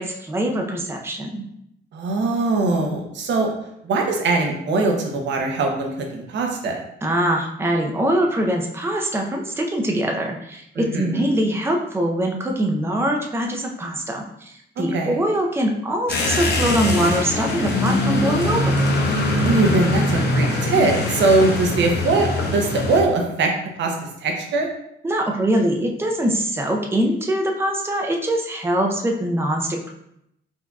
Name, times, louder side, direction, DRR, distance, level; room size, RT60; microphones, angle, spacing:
voice 1, 0.0-1.4 7.0-18.8 25.0-29.9, right 1 dB, 10° right, 1 dB, 0.5 m, -23 dB
voice 2, 1.9-3.5 3.8-6.8 10.8-11.2 14.8-15.2 19.5-23.5 23.8-23.9 24.2-24.7, right 3 dB, 65° right, 2 dB, 0.8 m, -21 dB
sound 1, 16.1-23.0, left 1 dB, 55° left, 0.8 m, -22 dB
4.6 x 2.7 x 2.3 m, 0.76 s
cardioid pair, 90°, 20 cm